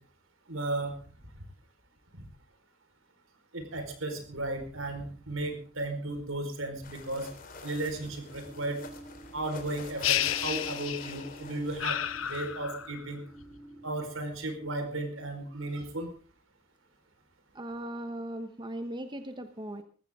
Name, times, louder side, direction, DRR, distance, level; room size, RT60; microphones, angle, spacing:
voice 1, 0.5-0.9 2.1-2.2 3.5-7.3 7.6-8.8 9.3-13.2 13.8-16.1, right 2 dB, 75° right, 6 dB, 4.7 m, -35 dB
sound 1, 6.8-12.6, left 3 dB, 45° left, 3.3 m, -46 dB
sound 2, 7.7-14.3, right 1 dB, 5° right, 7.0 m, -49 dB
sound 3, 10.0-11.4 11.8-13.1, left 11 dB, 80° left, 0.8 m, -31 dB
voice 2, 17.5-19.8, right 1 dB, 20° right, 8 dB, 1.1 m, -38 dB
19.0 x 15.0 x 3.7 m, 0.39 s
head